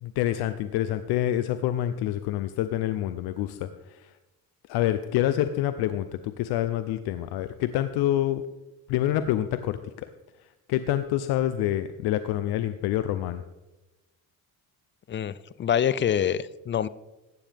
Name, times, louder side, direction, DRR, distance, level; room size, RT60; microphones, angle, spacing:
voice 1, 0.0-4.1 4.7-8.4 8.9-10.1 10.7-13.4, left 12 dB, 85° left, 11 dB, 0.6 m, -27 dB
voice 2, 15.6-16.9, left 9 dB, 35° left, 18 dB, 0.4 m, -25 dB
15.0 x 9.3 x 3.5 m, 1.0 s
cardioid pair, 100°, 37 cm